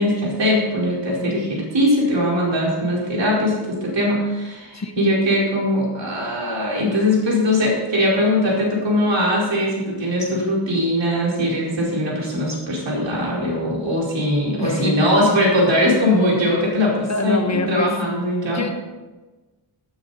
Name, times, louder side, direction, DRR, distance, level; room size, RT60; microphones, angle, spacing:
voice 1, 0.0-18.6, left 1 dB, 65° right, -4 dB, 4.9 m, -20 dB
voice 2, 4.7-5.3 14.6-15.1 16.9-17.9 18.4-18.8, left 3 dB, 35° left, 5 dB, 1.2 m, -25 dB
15.5 x 9.4 x 4.3 m, 1.2 s
wide cardioid pair, 130°, 48 cm